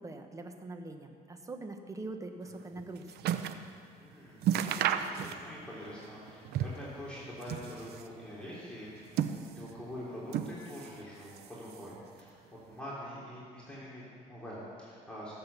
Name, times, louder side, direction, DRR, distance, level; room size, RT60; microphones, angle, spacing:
voice 1, 0.0-3.3, right 2 dB, 20° right, 5 dB, 1.3 m, -43 dB
sound 1, 2.5-3.7 4.0-4.1 4.4-5.7 6.0-6.9 7.3-8.2 8.8-9.8 10.3-11.0 11.3-12.0 12.7-12.8, right 9 dB, 70° right, 0.7 m, -33 dB
voice 2, 4.0-15.3, equal, 5° left, -8 dB, 3.2 m, -45 dB
16.0 x 7.9 x 7.0 m, 2.3 s
cardioid pair, 110°, 17 cm